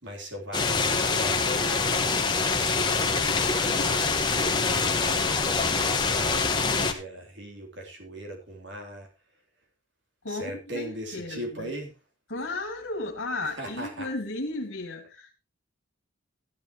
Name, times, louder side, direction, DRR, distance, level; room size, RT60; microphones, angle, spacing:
voice 1, 0.0-4.2 4.6-9.1 10.3-11.9 13.4-14.1, equal, 60° right, 2 dB, 3.6 m, -39 dB
sound 1, 0.5-6.9, left 4 dB, 20° left, 1.5 m, -25 dB
voice 2, 10.2-11.7 12.3-15.3, left 2 dB, 75° left, 0 dB, 2.2 m, -34 dB
14.0 x 11.5 x 3.1 m, 0.28 s
head